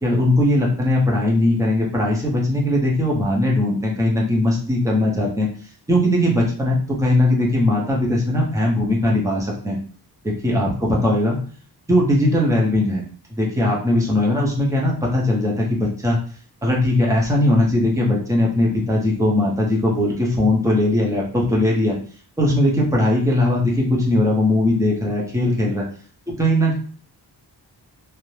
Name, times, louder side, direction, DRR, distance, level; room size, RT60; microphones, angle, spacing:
voice 1, 0.0-5.5 5.9-9.8 10.2-11.4 11.9-13.0 13.3-16.2 16.6-22.0 22.4-25.8 26.4-26.7, left 1 dB, 10° right, -3 dB, 0.7 m, -19 dB
2.4 x 2.1 x 3.1 m, 0.42 s
wide cardioid pair, 155°, 41 cm